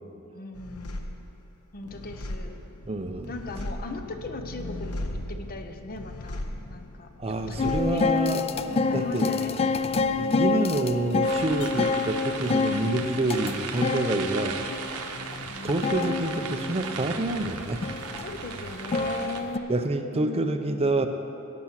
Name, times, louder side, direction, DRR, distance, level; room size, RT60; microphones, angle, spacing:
voice 1, 0.3-1.2 1.7-2.6 3.3-6.4 6.7-8.3 8.9-9.7 10.2-10.6 14.4-14.7 15.5-16.0 18.2-19.8 20.1-21.1, left 2 dB, 45° left, 6 dB, 0.7 m, -39 dB
sound 1, 0.5-15.4 15.7-16.5, left 1 dB, 80° left, 0.8 m, -40 dB
voice 2, 2.9-3.3 7.2-8.4 8.9-9.2 10.2-14.6 15.6-17.9 19.7-21.1, right 2 dB, 30° right, 6 dB, 0.6 m, -27 dB
sound 2, 7.6-19.6, left 4 dB, 25° left, 0.3 m, -28 dB
sound 3, 11.2-19.4, right 5 dB, 85° right, 0.9 m, -37 dB
17.0 x 6.0 x 5.9 m, 2.8 s
head